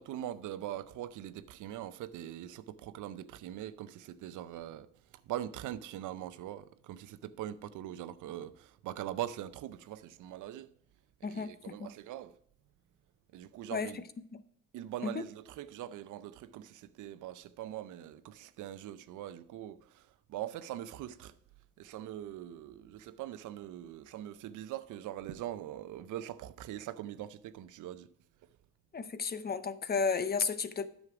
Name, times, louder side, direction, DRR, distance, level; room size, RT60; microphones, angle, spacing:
voice 1, 0.0-4.9 5.3-10.7 11.3-12.4 13.3-14.0 14.7-21.3 21.8-28.1, right 12 dB, 80° right, 0.6 m, -42 dB
voice 2, 11.2-11.9 13.7-14.0 14.3-14.4 15.0-15.2 28.9-30.9, left 5 dB, 30° left, 0.7 m, -33 dB
9.7 x 6.4 x 4.8 m
cardioid pair, 90°, 30 cm